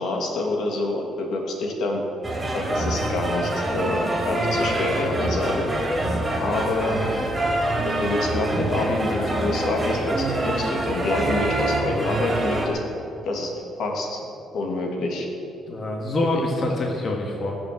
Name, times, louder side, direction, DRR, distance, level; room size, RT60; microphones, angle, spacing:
voice 1, 0.0-2.0 2.5-5.7 6.4-7.0 7.8-12.8 13.2-13.5 13.8-14.2 14.5-15.3, left 2 dB, 70° left, 1 dB, 2.5 m, -27 dB
sound 1, 2.2-12.7, right 1 dB, 15° right, 3.0 m, -25 dB
voice 2, 15.7-17.5, left 2 dB, 35° left, 0 dB, 1.6 m, -25 dB
19.5 x 7.0 x 7.7 m, 2.8 s
cardioid pair, 140°, 0 cm